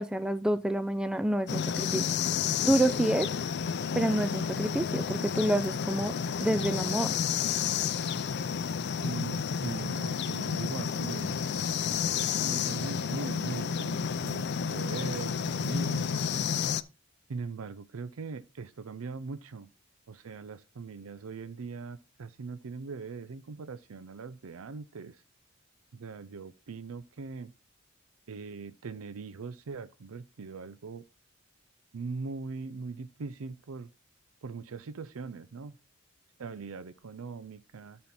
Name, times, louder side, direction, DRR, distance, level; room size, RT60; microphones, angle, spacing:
voice 1, 0.0-2.1 2.6-3.3 3.9-6.1 6.4-7.2, right 1 dB, 5° right, 0.4 m, -28 dB
sound 1, 1.5-16.8, left 7 dB, 55° left, 0.4 m, -31 dB
voice 2, 9.0-11.4 11.9-16.3 17.3-19.7 20.1-25.2 25.9-27.5 28.3-31.0 31.9-33.9 34.4-35.8 36.4-38.0, right 4 dB, 90° right, 0.5 m, -41 dB
12.0 x 4.4 x 4.1 m
head